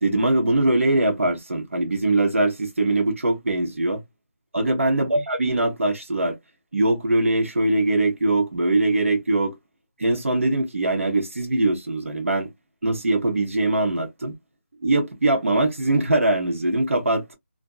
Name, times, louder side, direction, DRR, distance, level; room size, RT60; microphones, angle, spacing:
voice 1, 0.0-4.0 4.5-6.4 6.7-9.5 10.0-12.5 12.8-14.3 14.8-17.3, right 2 dB, 70° right, 1.0 m, -22 dB
2.5 x 2.2 x 2.2 m
figure-of-eight pair, 180°, 7 cm